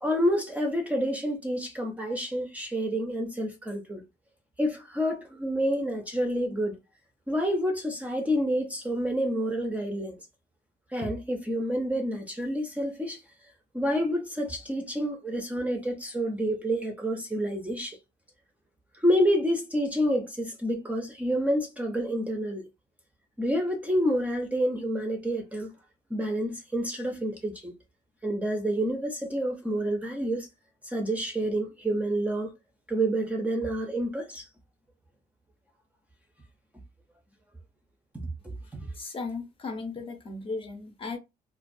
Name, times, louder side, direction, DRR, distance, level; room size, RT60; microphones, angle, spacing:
voice 1, 0.0-4.0 4.6-6.8 7.3-10.2 10.9-13.2 13.7-18.0 19.0-22.6 23.4-25.7 26.1-27.7 28.2-30.5 30.8-32.5 32.9-34.4 38.4-38.9, equal, 10° right, 0.5 m, -28 dB
voice 2, 38.6-41.2, left 3 dB, 30° left, 0.7 m, -36 dB
2.3 x 2.3 x 2.6 m
cardioid pair, 110°, 17 cm